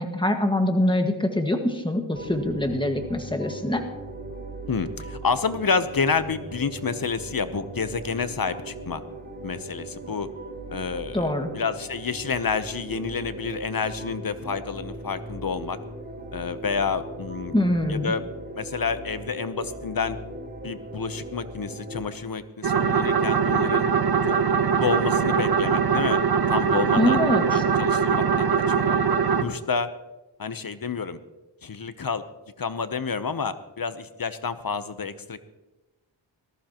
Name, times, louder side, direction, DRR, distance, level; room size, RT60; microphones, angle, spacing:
voice 1, 0.0-3.8 11.1-11.5 17.5-18.1 27.0-27.4, left 1 dB, 10° left, 4 dB, 1.7 m, -24 dB
sound 1, 2.1-22.1, right 1 dB, 20° right, 3.9 m, -39 dB
voice 2, 4.7-9.0 9.4-10.3 10.7-11.3 11.5-15.8 16.3-17.5 17.9-18.2 18.6-20.2 20.6-23.9 24.2-24.4 24.8-26.2 26.5-27.2 27.5-29.0 29.4-29.9 30.4-31.2 31.6-32.3 32.6-35.4, left 5 dB, 50° left, 12 dB, 0.9 m, -29 dB
sound 2, 22.6-29.4, right 6 dB, 55° right, 0.9 m, -22 dB
18.5 x 14.0 x 3.0 m, 1.1 s
wide cardioid pair, 65°, 47 cm